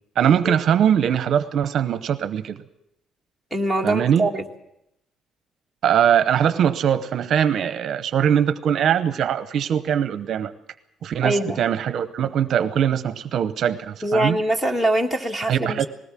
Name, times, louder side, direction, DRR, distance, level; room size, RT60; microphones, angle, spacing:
voice 1, 0.2-2.6 3.8-4.3 5.8-10.5 11.0-14.4 15.5-15.9, right 9 dB, 50° right, 13 dB, 0.8 m, -21 dB
voice 2, 3.5-4.4 11.2-11.6 14.0-15.9, right 1 dB, 5° left, 6 dB, 1.6 m, -23 dB
20.0 x 17.5 x 7.5 m, 0.82 s
cardioid pair, 170°, 0 cm